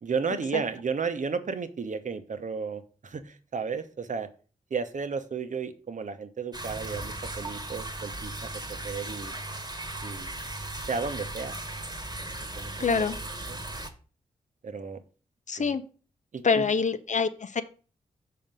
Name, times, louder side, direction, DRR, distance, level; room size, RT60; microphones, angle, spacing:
voice 1, 0.0-4.3 4.7-9.3 10.0-10.3 10.9-11.6 12.4-13.1 13.4-13.6 14.6-15.0 15.6-15.8 16.3-16.6, right 5 dB, 55° right, 9 dB, 0.9 m, -33 dB
sound 1, 6.5-13.9, right 2 dB, 25° right, 1.3 m, -37 dB
voice 2, 12.8-13.2 15.5-15.8 16.4-17.6, left 5 dB, 50° left, 11 dB, 0.7 m, -25 dB
5.9 x 4.2 x 5.3 m, 0.38 s
supercardioid pair, 40°, 16 cm